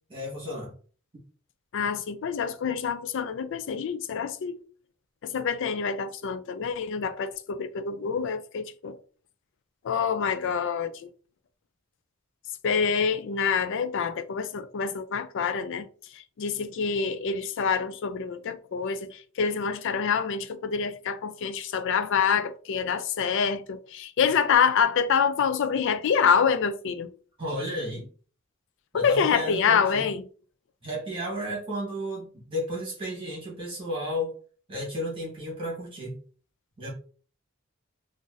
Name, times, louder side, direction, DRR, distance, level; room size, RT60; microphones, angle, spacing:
voice 1, 0.1-0.7 27.4-28.1 28.9-30.1 30.8-34.3 34.7-36.2 36.8-36.9, equal, 25° right, 1.6 m, -33 dB
voice 2, 1.7-4.6 5.2-9.0 9.8-11.1 12.6-15.9 16.1-27.1 28.9-30.2, left 6 dB, 60° left, 0.4 m, -26 dB
3.8 x 2.6 x 2.5 m
head